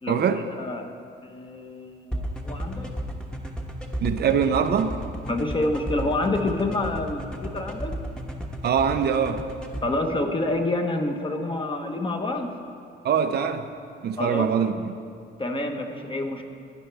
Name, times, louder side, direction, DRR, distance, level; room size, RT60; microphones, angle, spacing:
voice 1, 0.1-0.4 4.0-5.0 8.6-9.5 13.0-13.7 14.0-14.7, right 7 dB, 55° right, 8 dB, 0.6 m, -23 dB
voice 2, 0.6-0.9 1.2-2.9 5.3-7.9 9.8-12.5 14.2-14.5 15.4-16.4, left 2 dB, 25° left, 4 dB, 1.1 m, -28 dB
sound 1, 2.1-9.8, right 1 dB, 5° left, 1.1 m, -33 dB
15.0 x 9.3 x 3.4 m, 2.3 s
cardioid pair, 90°, 20 cm